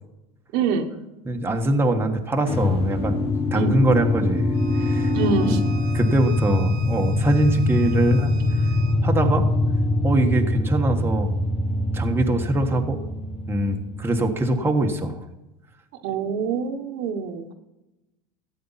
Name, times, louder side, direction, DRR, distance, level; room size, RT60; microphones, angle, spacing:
voice 1, 0.5-0.9 3.5-3.9 5.1-5.6 16.0-17.5, right 5 dB, 65° right, 5 dB, 1.4 m, -25 dB
voice 2, 1.2-5.1 5.4-5.6 5.9-8.3 9.0-9.5 10.0-11.4 11.9-13.0 13.5-15.2, right 2 dB, 15° right, 2 dB, 1.5 m, -23 dB
sound 1, 2.5-14.7, left 2 dB, 30° left, 1.6 m, -23 dB
Bowed string instrument, 4.5-9.0, right 5 dB, 80° right, 1.3 m, -44 dB
14.0 x 8.6 x 5.8 m, 0.98 s
supercardioid pair, 110°, 18 cm